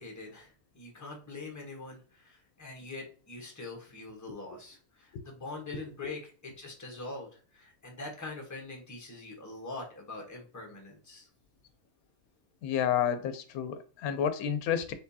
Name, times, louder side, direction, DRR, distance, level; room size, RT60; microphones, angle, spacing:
voice 1, 0.0-11.3, left 3 dB, 15° left, 1.1 m, -43 dB
voice 2, 12.6-14.9, left 9 dB, 85° left, 1.0 m, -30 dB
4.4 x 3.7 x 2.7 m
omnidirectional pair, 1.5 m